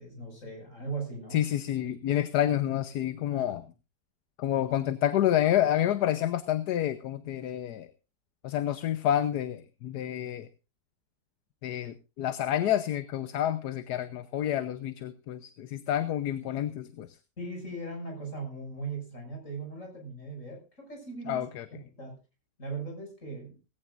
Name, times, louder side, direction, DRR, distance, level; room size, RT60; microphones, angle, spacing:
voice 1, 0.0-1.4 3.3-3.5 17.4-21.4 21.7-22.2 22.6-23.6, right 3 dB, 45° left, 2 dB, 6.7 m, -39 dB
voice 2, 1.3-3.6 4.4-7.9 8.4-10.5 11.6-17.1 21.3-21.6, left 11 dB, 75° left, 12 dB, 1.4 m, -29 dB
18.0 x 16.5 x 2.5 m, 0.31 s
omnidirectional pair, 1.8 m